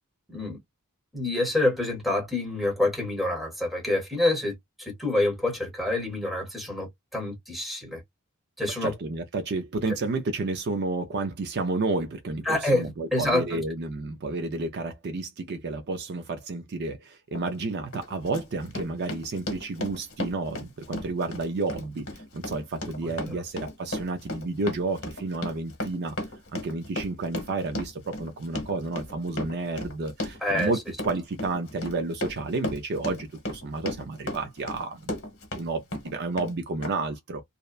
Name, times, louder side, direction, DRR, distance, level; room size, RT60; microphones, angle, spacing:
voice 1, 1.1-8.0 8.6-8.9 12.4-13.6 23.0-23.4 30.4-30.7, left 2 dB, ahead, 0.9 m, -27 dB
voice 2, 8.8-22.0 22.3-26.2 26.5-35.1 35.6-37.4, right 3 dB, 50° right, 0.4 m, -31 dB
Run, 17.3-17.5 17.9-35.6 35.9-36.5 36.8-36.9, left 1 dB, 60° left, 1.0 m, -35 dB
2.7 x 2.1 x 2.3 m
head